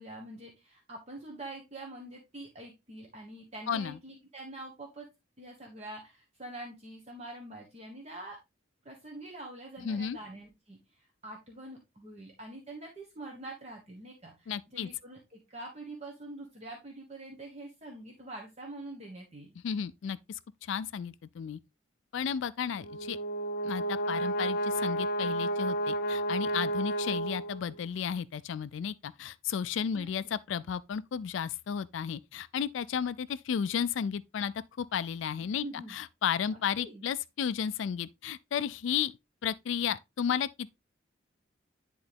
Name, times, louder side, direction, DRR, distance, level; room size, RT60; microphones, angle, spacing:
voice 1, 0.0-5.1 5.4-8.4 8.8-19.5 29.9-30.1 35.6-36.0 36.5-37.0, right 1 dB, 30° right, 1.3 m, -45 dB
voice 2, 3.7-4.0 9.8-10.2 14.5-14.9 19.6-21.6 22.1-23.2 23.6-39.1 39.4-40.5, left 7 dB, 70° left, 0.3 m, -33 dB
Brass instrument, 22.8-27.8, right 1 dB, 50° left, 0.9 m, -31 dB
10.5 x 3.8 x 3.4 m
head